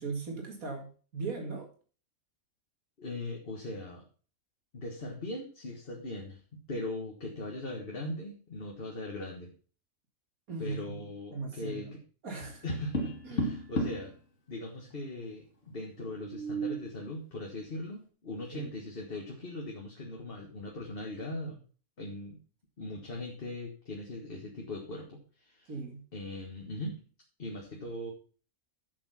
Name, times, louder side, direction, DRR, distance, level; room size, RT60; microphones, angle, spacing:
voice 1, 0.0-1.7 10.5-11.1 11.3-11.9 12.2-12.6 13.2-13.6 18.5-18.7 25.7-26.0, right 4 dB, 80° right, 1 dB, 2.6 m, -38 dB
voice 2, 3.0-4.0 4.7-9.5 10.6-12.0 12.6-14.1 14.5-21.6 22.0-22.4 22.8-25.7 26.1-27.0 27.4-28.1, left 2 dB, 45° left, 0 dB, 1.8 m, -40 dB
Tap, 12.4-14.1 16.1-16.9, equal, 60° left, 1.9 m, -33 dB
7.7 x 7.6 x 5.7 m, 0.39 s
omnidirectional pair, 1.4 m